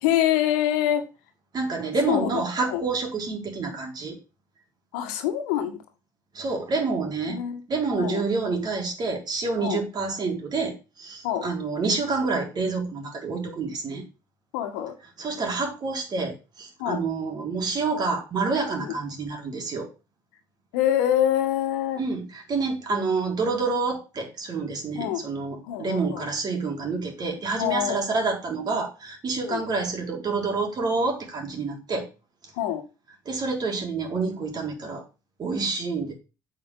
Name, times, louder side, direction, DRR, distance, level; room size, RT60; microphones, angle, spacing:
voice 1, 0.0-1.0 2.1-2.8 4.9-5.8 7.3-7.6 7.9-8.2 9.6-9.8 11.2-11.5 14.5-14.9 16.8-17.0 18.8-19.0 20.7-22.0 24.9-25.2 25.7-26.3 27.6-28.1 29.4-29.6 32.5-32.8, left 11 dB, 75° left, 1.8 m, -25 dB
voice 2, 1.5-4.2 6.3-7.4 7.7-14.1 15.2-19.9 22.0-32.1 33.3-35.0 35.4-36.1, right 4 dB, 45° right, 4.1 m, -28 dB
8.4 x 5.6 x 7.0 m
hypercardioid pair, 60°, 10 cm